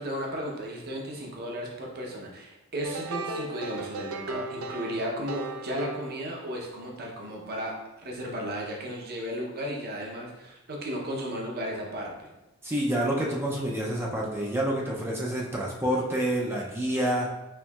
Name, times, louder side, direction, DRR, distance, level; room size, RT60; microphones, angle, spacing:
voice 1, 0.0-12.3, equal, 45° right, -1 dB, 0.7 m, -34 dB
sound 1, 2.8-6.7, right 3 dB, 75° right, 0.4 m, -37 dB
voice 2, 12.6-17.3, right 1 dB, 10° right, -3 dB, 0.4 m, -28 dB
4.5 x 3.1 x 2.3 m, 1.0 s
head